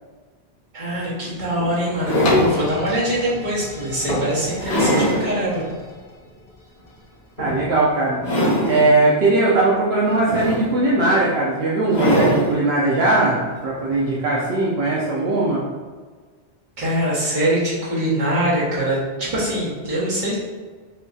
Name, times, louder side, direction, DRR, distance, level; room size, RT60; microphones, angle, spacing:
voice 1, 0.7-5.6 16.8-19.0 19.3-20.4, right 1 dB, 45° right, -8 dB, 1.4 m, -23 dB
sound 1, 0.9-1.0 1.6-2.6 3.3-3.4 4.1-5.3 5.7-5.8 7.4-7.8 8.1-8.9 10.1-11.0 11.9-12.5 13.9-14.0, equal, 75° left, 1.9 m, -22 dB
sound 2, 2.2-8.0 8.5-8.6, left 3 dB, 50° left, 0.4 m, -30 dB
voice 2, 7.4-8.2 8.7-15.6, right 2 dB, 75° right, -5 dB, 0.9 m, -19 dB
5.5 x 2.3 x 2.7 m, 1.5 s
omnidirectional pair, 1.1 m